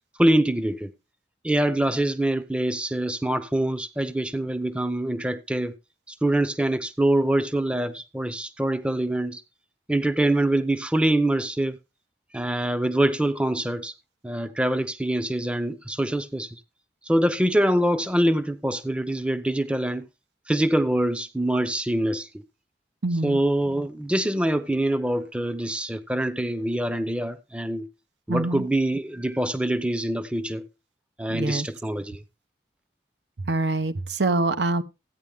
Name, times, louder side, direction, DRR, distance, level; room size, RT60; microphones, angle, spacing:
voice 1, 0.2-0.9 1.4-5.7 6.2-9.4 9.9-11.8 12.3-13.9 14.2-16.6 17.1-20.1 20.5-22.3 23.2-27.9 28.3-30.6 31.2-32.2, right 1 dB, 5° right, 0.6 m, -24 dB
voice 2, 23.0-23.4 28.3-28.6 31.3-31.7 33.5-34.8, right 2 dB, 80° right, 0.9 m, -25 dB
14.5 x 9.4 x 3.5 m
head